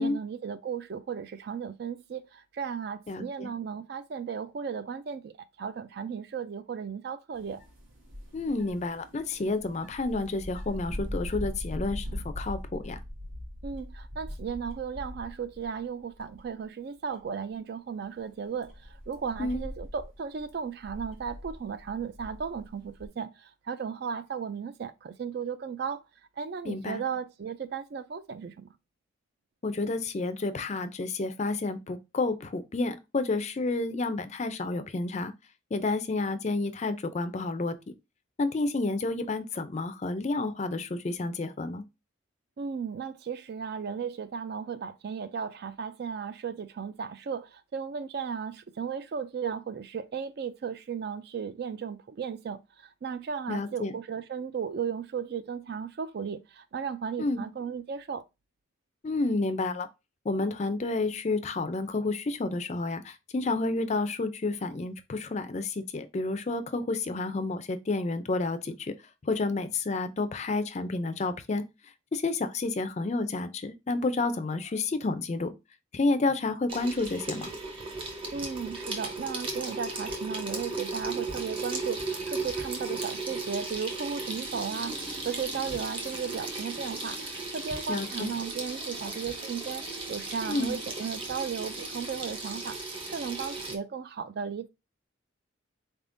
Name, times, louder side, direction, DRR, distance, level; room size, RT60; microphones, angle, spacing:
voice 1, 0.0-7.6 13.6-26.0 26.4-28.7 42.6-58.2 78.3-94.7, right 6 dB, 50° right, 0.3 m, -35 dB
voice 2, 3.1-3.5 8.3-13.0 19.4-19.6 26.6-27.0 29.6-35.3 35.7-37.7 38.4-41.8 53.5-54.0 57.2-57.4 59.0-59.9 60.3-68.9 69.2-71.6 72.1-75.5 75.9-77.5 87.9-88.3 90.5-90.8, left 3 dB, 35° left, 0.4 m, -30 dB
sound 1, 7.3-15.8 16.1-16.6 17.1-17.2 18.1-23.1, left 1 dB, 70° right, 1.5 m, -41 dB
Water tap faucet / Sink (filling or washing), 76.7-93.8, right 3 dB, 25° right, 0.7 m, -36 dB
4.1 x 3.5 x 2.5 m
head